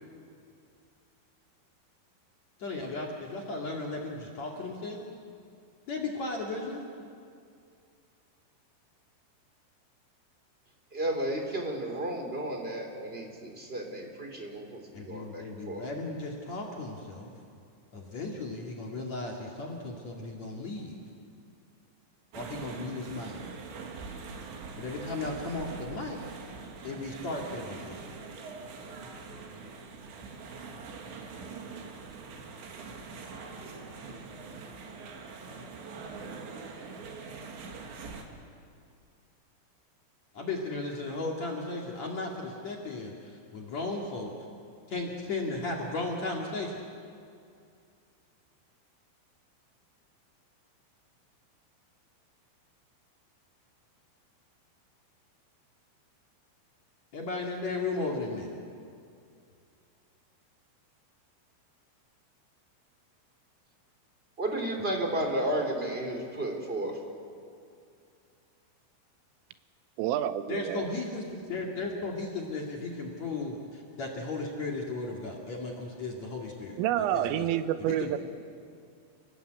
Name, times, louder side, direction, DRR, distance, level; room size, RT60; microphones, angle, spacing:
voice 1, 2.6-5.1 5.9-6.9 14.9-17.3 17.9-21.0 22.3-23.4 24.8-26.2 26.8-28.0 40.3-43.1 43.5-44.3 44.9-46.8 57.1-58.5 70.5-77.5 77.9-78.2, left 3 dB, 45° left, -1 dB, 2.6 m, -35 dB
voice 2, 10.9-15.9 64.4-67.0, right 1 dB, 15° right, 2 dB, 2.6 m, -33 dB
sound 1, 22.3-38.2, right 4 dB, 65° right, 4.2 m, -43 dB
voice 3, 70.0-70.9 76.8-78.2, right 12 dB, 85° right, 11 dB, 3.5 m, -28 dB
29.5 x 19.0 x 8.2 m, 2.4 s
omnidirectional pair, 5.7 m